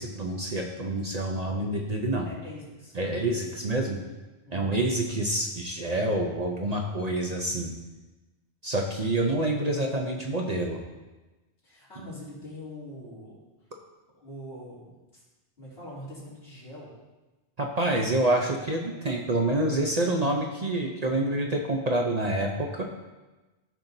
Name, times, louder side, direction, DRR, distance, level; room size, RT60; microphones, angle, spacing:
voice 1, 0.0-2.3 2.9-4.0 4.5-7.7 8.6-10.8 17.6-22.8, right 1 dB, 40° right, 1 dB, 0.7 m, -27 dB
voice 2, 2.2-3.5 4.4-4.7 11.6-13.7 14.2-15.2 15.6-16.9, left 1 dB, 65° left, -8 dB, 3.4 m, -44 dB
13.5 x 5.6 x 2.7 m, 1.1 s
omnidirectional pair, 1.1 m